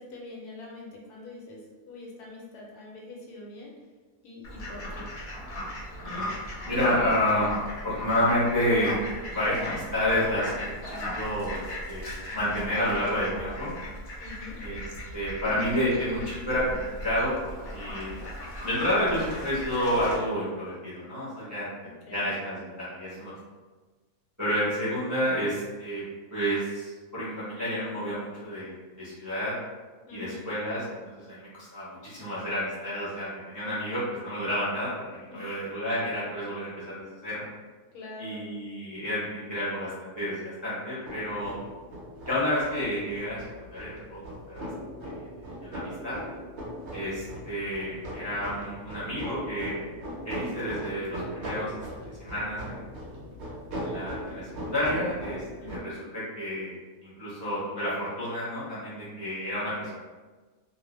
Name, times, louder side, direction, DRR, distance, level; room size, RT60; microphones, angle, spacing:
voice 1, 0.0-1.6 1.9-3.7 4.2-5.1 14.2-14.6 22.1-22.2 30.1-30.4 35.3-35.6 37.9-38.5 55.6-56.0, left 3 dB, 75° left, -3 dB, 1.1 m, -44 dB
Fowl, 4.4-20.1, left 1 dB, 60° left, 0.9 m, -37 dB
voice 2, 6.6-7.5 7.8-9.0 9.3-11.6 11.9-13.7 14.6-14.8 15.1-18.2 18.6-21.7 22.1-23.3 24.4-26.0 26.3-29.5 30.1-37.4 38.2-41.6 42.2-44.7 45.0-45.2 45.6-46.2 46.9-49.8 50.2-51.7 52.2-52.9 53.7-56.7 57.0-59.9, left 1 dB, 20° right, -10 dB, 0.6 m, -30 dB
sound 1, 41.0-55.8, equal, 65° right, 0.7 m, -39 dB
2.6 x 2.0 x 3.0 m, 1.3 s
omnidirectional pair, 1.7 m